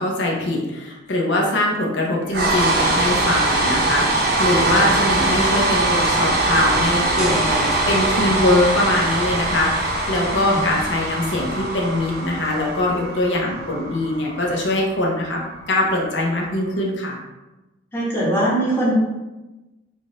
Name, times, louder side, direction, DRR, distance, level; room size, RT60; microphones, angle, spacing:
voice 1, 0.0-15.4 15.7-17.2, left 1 dB, 70° left, -2 dB, 0.7 m, -22 dB
sound 1, 2.3-16.4, right 2 dB, 55° right, 0.7 m, -22 dB
sound 2, 7.2-12.7, equal, 5° right, 0.5 m, -33 dB
voice 2, 17.9-18.9, right 1 dB, 10° left, -7 dB, 1.0 m, -22 dB
3.6 x 2.5 x 3.9 m, 1.1 s
head